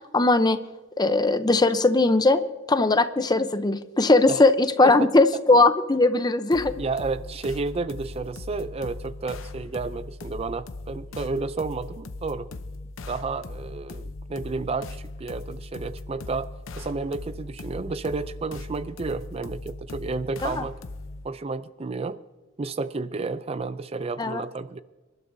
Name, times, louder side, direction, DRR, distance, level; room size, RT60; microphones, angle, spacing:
voice 1, 0.1-0.6 1.0-2.4 2.7-6.7 20.4-20.6 24.2-24.4, left 2 dB, 20° left, 11 dB, 0.7 m, -19 dB
sound 1, 6.5-21.3, left 2 dB, 75° left, 0.7 m, -39 dB
voice 2, 6.8-12.5 13.1-16.5 16.8-20.8 21.2-22.2 22.6-24.8, right 3 dB, 30° right, 14 dB, 0.4 m, -31 dB
27.0 x 12.0 x 2.7 m, 1.2 s
head